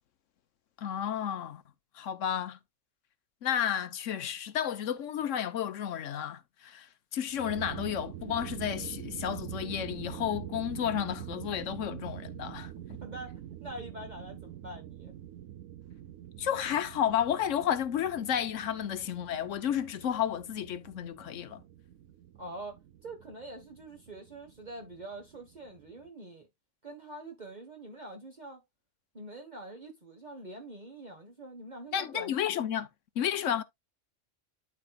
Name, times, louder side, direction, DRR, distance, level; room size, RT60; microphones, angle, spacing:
voice 1, 0.8-1.6 1.9-2.6 3.4-12.7 16.4-21.6 31.9-32.9 33.2-33.6, left 9 dB, 85° left, 1.2 m, -32 dB
sound 1, 7.3-26.1, right 11 dB, 85° right, 0.9 m, -45 dB
voice 2, 13.0-15.1 22.4-26.5 26.8-28.6 29.1-32.3, right 1 dB, 40° right, 1.4 m, -45 dB
12.0 x 4.4 x 2.3 m
omnidirectional pair, 1.3 m